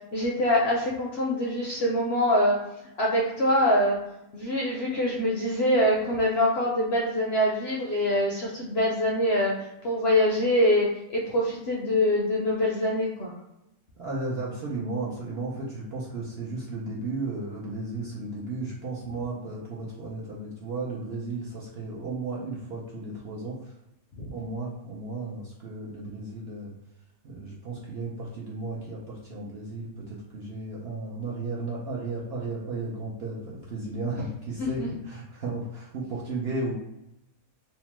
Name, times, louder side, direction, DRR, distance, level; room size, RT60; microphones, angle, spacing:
voice 1, 0.1-2.6 3.0-4.0 4.3-9.5 9.8-10.9 11.1-13.3 24.2-24.3 34.6-34.9, left 1 dB, 65° left, -3 dB, 0.6 m, -24 dB
voice 2, 14.0-23.6 24.3-26.7 27.2-36.7, right 3 dB, 60° right, -5 dB, 0.7 m, -34 dB
2.8 x 2.1 x 2.9 m, 0.88 s
omnidirectional pair, 1.5 m